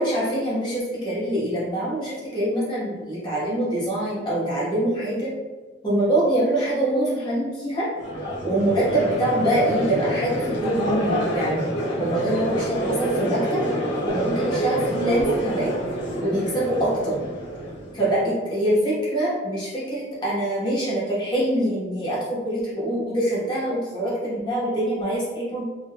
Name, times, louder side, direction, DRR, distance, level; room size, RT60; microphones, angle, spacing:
voice 1, 0.0-5.3 5.8-7.9 8.4-11.6 12.0-13.6 14.0-15.8 16.2-17.2 17.9-25.7, right 1 dB, 25° left, -9 dB, 1.1 m, -24 dB
Crowd, 8.0-18.2, right 1 dB, 70° left, 0.8 m, -27 dB
3.7 x 2.5 x 2.3 m, 1.3 s
head